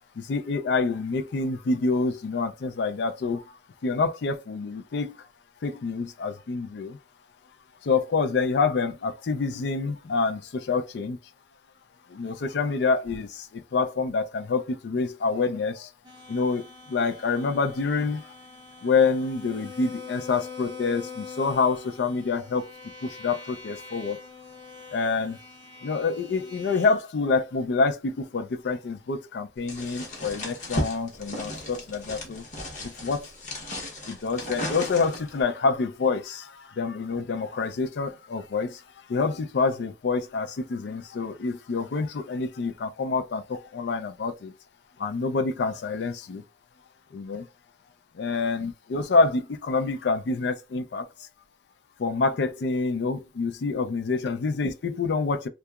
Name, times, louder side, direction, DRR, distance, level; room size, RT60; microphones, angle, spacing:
voice 1, 0.2-3.4 3.8-5.2 5.6-7.0 7.8-11.2 12.1-15.9 16.3-18.2 18.8-22.7 23.0-24.2 24.9-25.4 25.8-32.4 32.8-33.2 34.1-38.8 39.1-44.5 45.0-46.4 47.1-47.5 48.2-51.1 52.0-55.5, left 4 dB, 75° left, 0.4 m, -27 dB
sound 1, 16.0-27.0, left 4 dB, 25° right, 0.5 m, -44 dB
sound 2, 29.7-35.4, left 1 dB, 45° left, 0.8 m, -35 dB
2.8 x 2.3 x 2.3 m
head